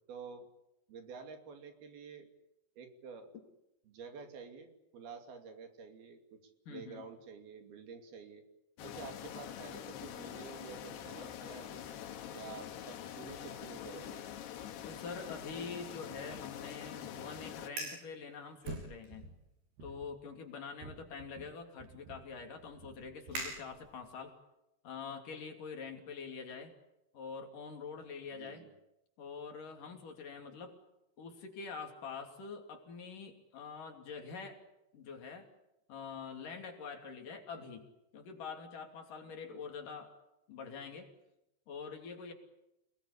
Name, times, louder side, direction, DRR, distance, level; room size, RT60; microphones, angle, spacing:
voice 1, 0.1-0.5 0.9-2.3 2.8-3.3 3.9-6.4 6.7-8.4 8.8-11.9 12.3-14.3 28.3-28.7 39.5-39.6, right 5 dB, 70° right, 6 dB, 4.6 m, -49 dB
voice 2, 6.7-7.1 14.8-19.3 19.8-24.4 24.8-26.7 27.1-28.6 29.2-30.8 31.2-34.6 34.9-35.5 35.9-40.2 40.5-41.1 41.7-42.3, left 5 dB, 55° left, 4 dB, 4.3 m, -45 dB
sound 1, 8.8-17.7, left 10 dB, 90° left, 3.7 m, -45 dB
Fire, 17.7-18.1 18.6-19.4 19.8-20.1 20.8-24.2, right 2 dB, 85° right, 9.2 m, -45 dB
29.5 x 19.5 x 8.5 m, 0.89 s
omnidirectional pair, 4.6 m